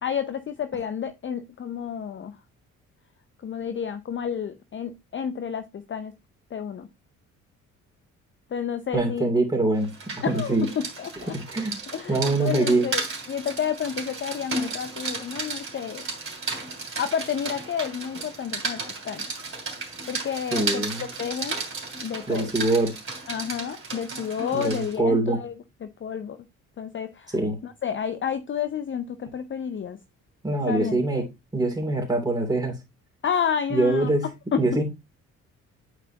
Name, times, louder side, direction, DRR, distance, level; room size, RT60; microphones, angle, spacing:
voice 1, 0.0-2.4 3.4-6.1 6.5-6.9 8.5-9.3 10.2-11.4 11.9-16.1 16.8-19.3 19.8-21.6 22.0-22.5 23.3-25.5 25.8-26.5 26.8-27.3 27.6-30.0 30.7-31.0 33.2-34.1 34.5-34.6, left 7 dB, 30° left, 0.6 m, -30 dB
voice 2, 8.9-9.9 10.3-10.7 11.3-11.7 12.1-12.9 20.5-21.1 22.3-22.9 24.5-25.4 27.3-27.6 30.4-31.2 31.5-32.7 33.7-34.2 34.6-34.8, right 2 dB, 10° right, 3.0 m, -23 dB
Rain, 9.8-24.9, right 3 dB, 30° right, 3.0 m, -34 dB
9.0 x 4.7 x 2.9 m
figure-of-eight pair, 45°, 42 cm